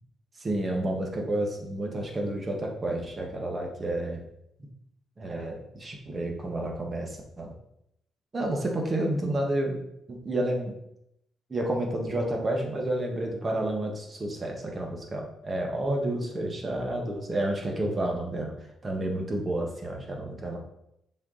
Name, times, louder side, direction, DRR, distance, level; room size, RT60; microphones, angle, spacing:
voice 1, 0.4-4.2 5.2-7.5 8.3-9.8 10.1-10.8 11.5-18.6 18.8-20.6, right 1 dB, 30° right, 1 dB, 1.5 m, -30 dB
7.0 x 4.5 x 4.0 m, 0.79 s
cardioid pair, 90°, 0 cm